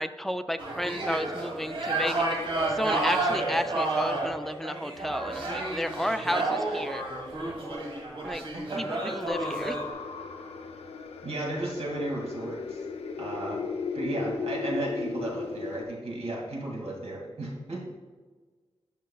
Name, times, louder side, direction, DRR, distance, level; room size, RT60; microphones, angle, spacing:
voice 1, 0.0-2.3 2.8-7.0 8.2-8.4 8.8-9.8, equal, ahead, 10 dB, 0.3 m, -32 dB
sound 1, 0.6-9.9, right 2 dB, 55° right, 1.6 m, -30 dB
voice 2, 8.5-9.0 11.2-12.8 13.1-13.6 13.9-17.9, right 1 dB, 85° right, -2 dB, 2.1 m, -34 dB
sound 2, 9.3-15.8, left 5 dB, 75° left, 0.6 m, -36 dB
11.0 x 5.7 x 2.3 m, 1.4 s
wide cardioid pair, 145°, 10 cm